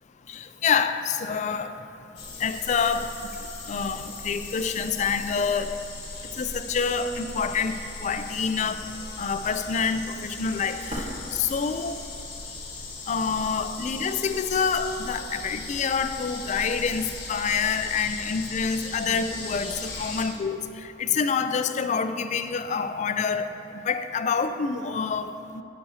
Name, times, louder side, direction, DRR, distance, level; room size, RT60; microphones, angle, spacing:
voice 1, 0.3-1.8 2.4-3.1 3.7-5.8 6.4-7.7 8.0-8.9 9.2-11.0 11.3-12.0 13.1-23.5 23.9-25.6, left 6 dB, 40° left, 10 dB, 0.3 m, -27 dB
sound 1, 2.2-20.3, left 3 dB, 55° left, 1.7 m, -38 dB
sound 2, 10.9-12.9 13.1-13.2 14.0-14.9, equal, 35° right, 1.1 m, -40 dB
9.5 x 9.1 x 2.8 m, 2.7 s
head